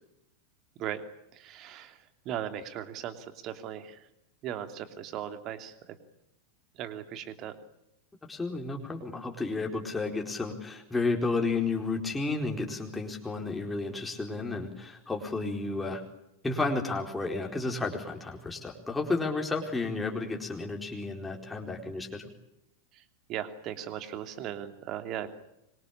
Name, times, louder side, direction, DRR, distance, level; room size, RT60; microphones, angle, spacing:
voice 1, 1.3-2.0 2.2-4.0 4.4-5.7 6.8-7.5 23.3-25.3, right 10 dB, 35° right, 9 dB, 2.9 m, -37 dB
voice 2, 8.3-16.0 16.4-22.3, left 3 dB, 10° left, 1 dB, 4.3 m, -32 dB
26.0 x 24.0 x 8.6 m, 0.85 s
figure-of-eight pair, 90°, 0 cm